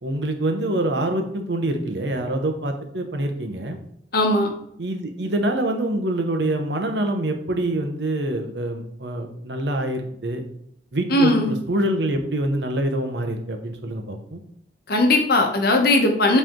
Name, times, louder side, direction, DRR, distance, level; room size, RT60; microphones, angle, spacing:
voice 1, 0.0-3.8 4.8-10.4 10.9-14.4, right 1 dB, 75° right, 5 dB, 0.9 m, -25 dB
voice 2, 4.1-4.5 11.1-11.5 14.9-16.4, left 2 dB, 60° left, 3 dB, 1.0 m, -18 dB
7.7 x 3.3 x 3.7 m, 0.71 s
head